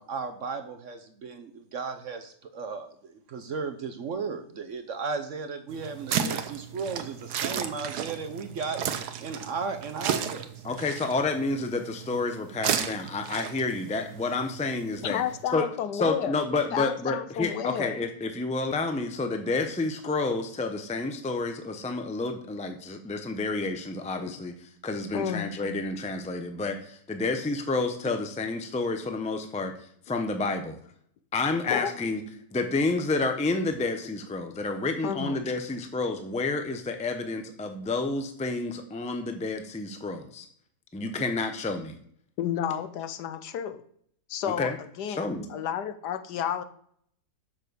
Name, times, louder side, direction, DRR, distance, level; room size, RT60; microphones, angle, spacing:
voice 1, 0.0-8.8 9.2-10.6, right 5 dB, 55° right, 7 dB, 0.9 m, -35 dB
sound 1, 5.7-15.4, right 8 dB, 75° right, 1.3 m, -34 dB
voice 2, 10.6-15.2 15.5-15.7 15.9-29.7 30.1-30.8 31.3-32.2 32.5-40.5 40.9-42.0 44.5-44.8 45.1-45.5, left 3 dB, 10° left, 6 dB, 0.4 m, -30 dB
voice 3, 15.0-16.4 16.7-18.0 24.2-24.3 25.1-25.5 28.1-28.2 31.7-31.9 35.0-35.5 42.4-43.8 44.3-44.7 45.0-46.6, left 9 dB, 75° left, 10 dB, 1.3 m, -31 dB
6.8 x 5.9 x 6.7 m, 0.64 s
omnidirectional pair, 1.8 m